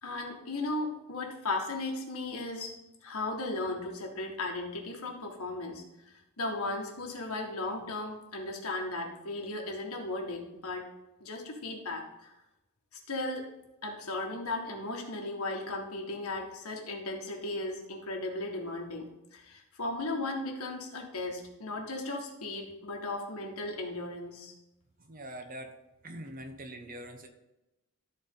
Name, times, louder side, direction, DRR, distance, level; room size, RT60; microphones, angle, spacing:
voice 1, 0.0-2.7 3.0-10.9 11.2-12.3 12.9-13.5 13.8-24.5, left 2 dB, 90° left, 1 dB, 1.7 m, -36 dB
voice 2, 25.0-25.8 26.0-27.3, right 1 dB, 40° right, 5 dB, 1.0 m, -43 dB
13.0 x 4.4 x 3.9 m, 0.95 s
head